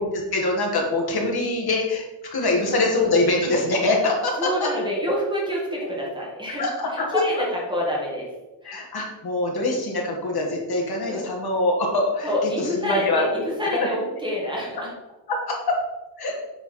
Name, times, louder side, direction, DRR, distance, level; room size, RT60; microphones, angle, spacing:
voice 1, 0.1-4.7 6.6-7.2 8.6-13.3 13.7-13.9 15.3-15.8 16.2-16.4, left 2 dB, 55° left, 0 dB, 1.7 m, -24 dB
voice 2, 2.4-2.8 4.4-6.6 7.1-8.3 8.6-8.8 11.1-11.2 12.2-14.9, left 1 dB, 10° right, -4 dB, 1.8 m, -27 dB
7.9 x 4.5 x 4.3 m, 1.0 s
wide cardioid pair, 170°, 46 cm